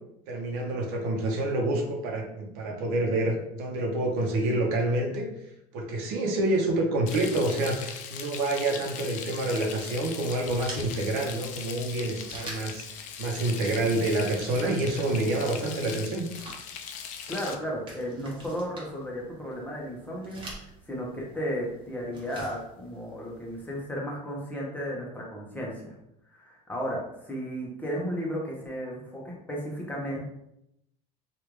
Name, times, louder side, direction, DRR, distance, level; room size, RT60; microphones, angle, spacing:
voice 1, 0.3-5.3 5.7-12.9 13.2-16.3, right 2 dB, 80° right, 1 dB, 0.8 m, -28 dB
Frying (food), 7.1-17.5, left 7 dB, 50° left, 0.4 m, -40 dB
sound 1, 10.4-23.8, right 1 dB, 30° right, 1.0 m, -48 dB
voice 2, 17.3-25.9 26.3-30.2, equal, 10° left, -3 dB, 0.9 m, -34 dB
3.2 x 2.5 x 3.1 m, 0.81 s
cardioid pair, 130°, 17 cm